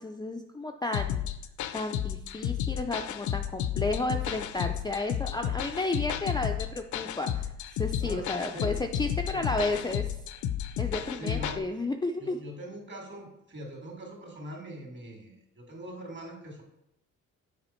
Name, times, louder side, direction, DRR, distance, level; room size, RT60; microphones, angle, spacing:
voice 1, 0.0-1.2 1.7-7.5 7.8-10.1 10.8-12.4, left 2 dB, 15° left, 4 dB, 0.4 m, -32 dB
sound 1, 0.9-11.6, left 10 dB, 75° left, 0.6 m, -32 dB
voice 2, 8.0-8.7 9.3-9.7 11.1-11.6 12.2-16.6, right 1 dB, 40° right, 0 dB, 2.5 m, -42 dB
7.0 x 5.0 x 4.4 m, 0.85 s
cardioid pair, 90°, 30 cm